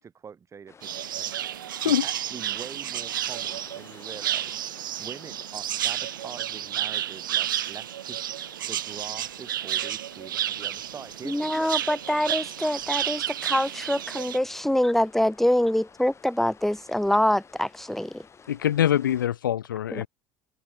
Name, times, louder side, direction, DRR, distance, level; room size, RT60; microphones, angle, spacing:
voice 1, 0.0-1.3 1.8-8.2 8.7-11.7, right 6 dB, 25° right, 2.7 m, -44 dB
sound 1, 0.7-19.3, left 6 dB, 25° left, 6.2 m, -53 dB
sound 2, 0.8-14.4, right 11 dB, 70° right, 0.5 m, -31 dB
voice 2, 11.2-18.2 19.9-20.1, left 1 dB, 5° left, 0.7 m, -25 dB
voice 3, 18.5-20.1, left 11 dB, 70° left, 0.6 m, -24 dB
figure-of-eight pair, 65°, 11 cm